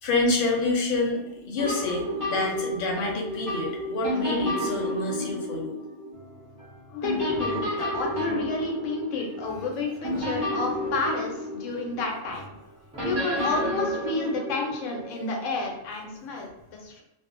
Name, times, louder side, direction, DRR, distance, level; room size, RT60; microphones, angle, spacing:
voice 1, 0.0-5.8 6.9-7.0, left 3 dB, 55° left, 0 dB, 0.7 m, -28 dB
sound 1, 1.6-6.7 7.0-12.3 13.0-15.6, equal, 50° right, 0.9 m, -31 dB
sound 2, 6.1-13.5, left 2 dB, 10° right, 0.3 m, -44 dB
voice 2, 6.9-12.5 13.0-17.0, left 3 dB, 85° left, 1 dB, 1.0 m, -31 dB
2.4 x 2.1 x 2.4 m, 0.86 s
omnidirectional pair, 1.3 m